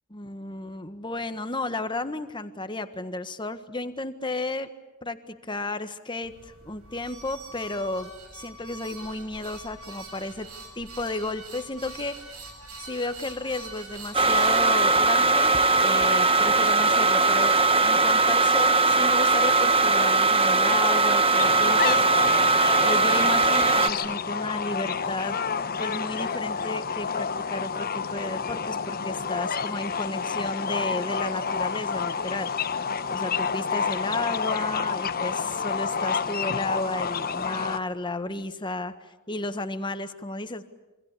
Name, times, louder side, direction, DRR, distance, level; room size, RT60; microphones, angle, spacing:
voice 1, 0.1-4.7 5.0-10.5 10.7-12.2 12.8-22.0 22.8-25.4 25.8-32.5 33.1-40.6, left 2 dB, 20° left, 10 dB, 1.5 m, -33 dB
sound 1, 6.2-14.7, right 2 dB, 80° right, 6.6 m, -43 dB
sound 2, 14.1-23.9, right 3 dB, 25° right, 1.0 m, -20 dB
sound 3, 21.4-37.8, left 6 dB, 45° left, 1.1 m, -29 dB
27.5 x 25.0 x 8.5 m, 1.1 s
head